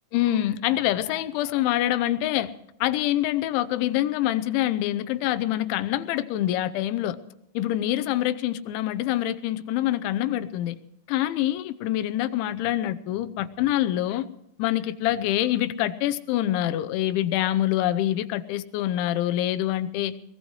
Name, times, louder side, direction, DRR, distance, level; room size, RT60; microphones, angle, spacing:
voice 1, 0.1-2.5 2.8-7.2 7.5-10.8 11.1-14.3 14.6-20.1, left 13 dB, 80° left, 11 dB, 3.1 m, -25 dB
22.0 x 21.0 x 3.2 m, 0.81 s
omnidirectional pair, 5.5 m